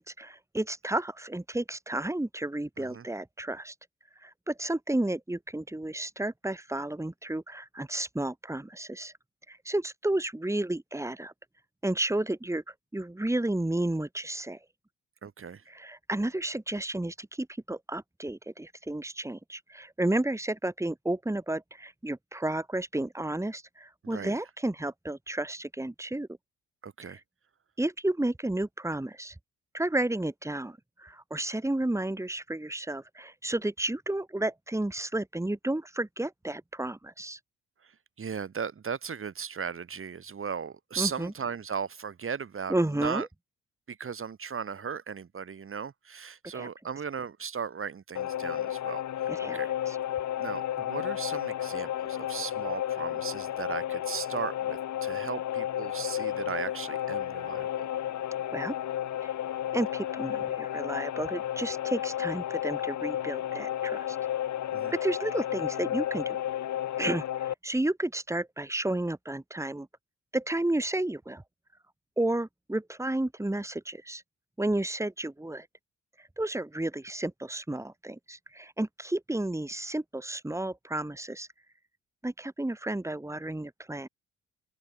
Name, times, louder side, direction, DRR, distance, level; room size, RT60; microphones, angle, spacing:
voice 1, 0.0-3.7 4.2-9.1 9.5-11.3 11.8-14.6 15.7-26.3 27.0-27.2 27.8-29.3 29.7-37.4 41.0-41.3 42.7-43.3 46.5-46.7 49.3-49.6 49.8-50.0 58.5-58.7 59.2-59.3 59.7-64.2 64.9-66.4 67.0-69.9 70.3-71.4 72.2-74.2 74.6-75.7 76.2-81.5 82.2-84.1, right 1 dB, 10° right, 6.5 m, -32 dB
voice 2, 15.2-15.6 24.0-24.4 26.8-27.2 37.8-43.3 43.9-49.0 49.4-49.7 50.4-57.9 64.7-64.9, right 6 dB, 45° right, 7.9 m, -37 dB
sound 1, 48.1-67.5, left 11 dB, 70° left, 4.9 m, -32 dB
cardioid pair, 90°, 30 cm